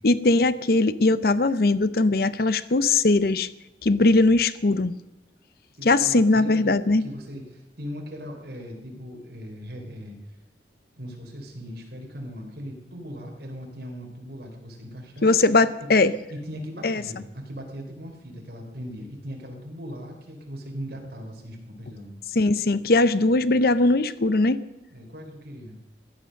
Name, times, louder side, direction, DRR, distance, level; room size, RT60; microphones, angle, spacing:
voice 1, 0.0-3.5 3.8-4.9 5.8-7.0 15.2-16.1 16.8-17.0 22.4-24.6, left 2 dB, 55° left, 15 dB, 0.7 m, -20 dB
voice 2, 5.7-6.7 7.0-10.2 11.0-15.4 16.3-22.1 24.9-25.8, equal, 60° right, 1 dB, 3.8 m, -39 dB
16.0 x 10.5 x 6.5 m, 1.0 s
head